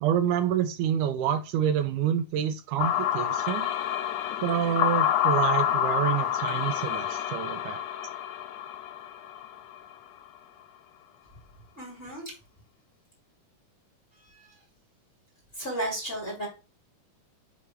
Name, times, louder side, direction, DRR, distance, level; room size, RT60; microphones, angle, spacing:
voice 1, 0.0-3.7 4.4-7.8, right 9 dB, 80° right, 9 dB, 2.0 m, -27 dB
sound 1, 2.8-9.9, left 11 dB, 80° left, 1.5 m, -28 dB
voice 2, 11.8-12.3 14.3-14.5 15.6-16.5, right 1 dB, 20° left, -2 dB, 2.3 m, -33 dB
9.2 x 3.6 x 3.2 m, 0.31 s
omnidirectional pair, 3.8 m